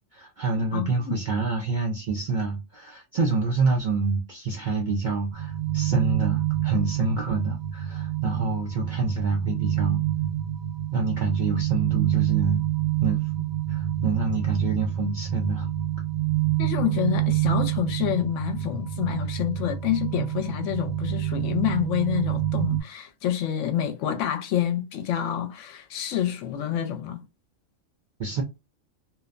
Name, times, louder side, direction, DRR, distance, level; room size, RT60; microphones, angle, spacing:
voice 1, 0.1-10.0 10.9-12.6 13.0-13.2 13.7-15.7 28.2-28.4, right 4 dB, 70° right, 0.4 m, -27 dB
voice 2, 0.7-1.2 16.6-27.2, left 10 dB, 70° left, 0.9 m, -28 dB
sound 1, 5.3-22.8, right 13 dB, 90° right, 1.1 m, -27 dB
2.8 x 2.1 x 2.4 m
omnidirectional pair, 1.4 m